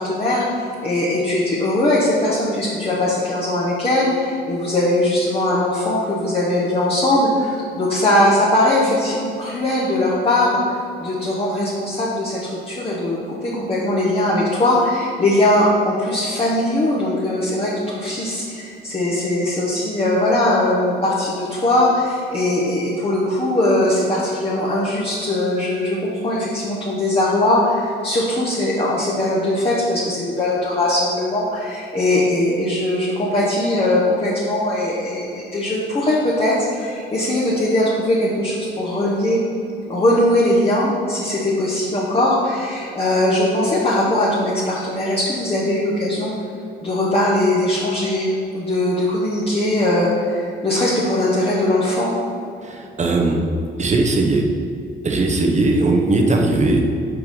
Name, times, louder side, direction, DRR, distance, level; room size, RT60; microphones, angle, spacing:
voice 1, 0.0-39.4 39.9-46.3 46.8-52.2, left 1 dB, 30° left, -6 dB, 1.4 m, -20 dB
voice 2, 52.6-53.4 53.8-54.5 55.0-56.8, right 2 dB, 35° right, 2 dB, 1.1 m, -18 dB
6.0 x 5.0 x 5.4 m, 2.6 s
cardioid pair, 90°, 20 cm